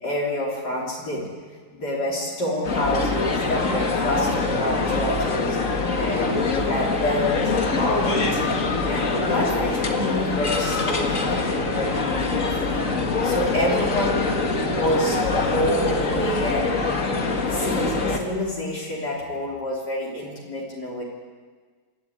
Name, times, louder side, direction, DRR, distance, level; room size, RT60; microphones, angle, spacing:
voice 1, 0.0-1.3 1.7-5.6 6.0-8.4 8.8-12.9 13.2-14.4 14.7-16.7 17.4-21.0, left 1 dB, 70° left, -4 dB, 4.1 m, -27 dB
sound 1, 2.6-18.2, left 3 dB, 50° left, 2.2 m, -24 dB
26.5 x 12.5 x 9.5 m, 1.5 s
omnidirectional pair, 1.8 m